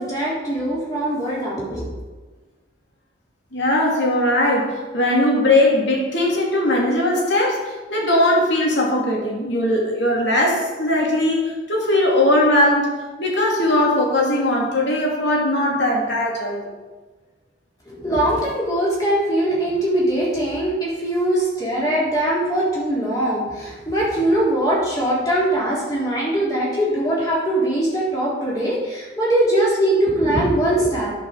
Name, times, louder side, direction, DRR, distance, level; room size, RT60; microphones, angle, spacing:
voice 1, 0.0-1.9 17.9-31.1, right 1 dB, 20° left, -6 dB, 3.5 m, -21 dB
voice 2, 3.5-16.7, left 1 dB, 70° left, -1 dB, 2.6 m, -19 dB
10.5 x 5.7 x 7.1 m, 1.2 s
head